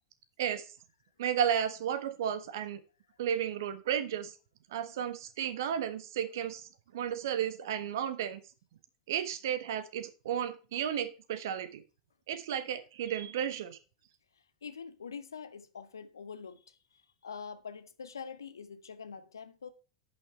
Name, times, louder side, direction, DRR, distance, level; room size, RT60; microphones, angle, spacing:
voice 1, 0.4-0.7 1.2-2.8 3.2-4.3 4.7-8.4 9.1-11.8 12.3-13.8, right 9 dB, 60° right, 1.3 m, -33 dB
voice 2, 14.6-19.7, left 6 dB, 75° left, 1.1 m, -45 dB
10.5 x 5.9 x 4.3 m
figure-of-eight pair, 90°, 2 cm